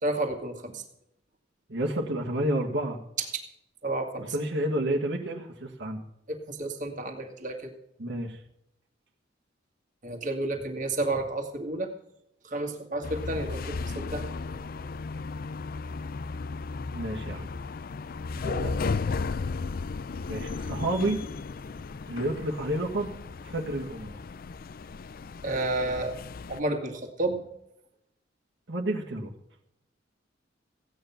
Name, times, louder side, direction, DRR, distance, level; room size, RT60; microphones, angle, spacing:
voice 1, 0.0-0.8 3.3-3.4 3.8-4.3 6.3-7.7 10.0-11.9 12.4-14.4 18.4-18.7 25.4-26.2 26.5-27.4, right 2 dB, 45° right, 4 dB, 2.0 m, -31 dB
voice 2, 1.7-3.0 4.2-6.0 8.0-8.4 16.9-17.5 18.3-18.7 20.3-21.2 22.1-23.1 23.4-24.2 28.7-29.3, right 1 dB, 65° right, -1 dB, 1.7 m, -30 dB
sound 1, 13.0-26.6, left 4 dB, 50° left, 0.4 m, -35 dB
15.5 x 9.4 x 5.8 m, 0.80 s
head